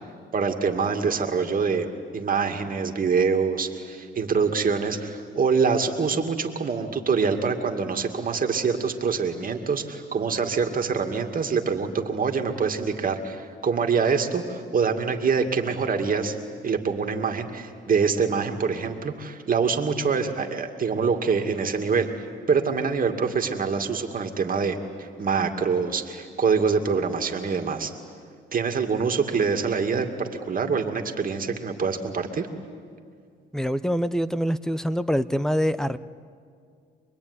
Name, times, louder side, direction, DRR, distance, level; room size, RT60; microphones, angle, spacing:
voice 1, 0.3-1.9 2.1-16.4 16.6-27.9 28.5-32.5, right 5 dB, 45° right, 4 dB, 2.3 m, -25 dB
voice 2, 33.5-36.0, equal, 5° left, 15 dB, 0.8 m, -25 dB
26.5 x 21.0 x 9.7 m, 2.2 s
cardioid pair, 90°, 20 cm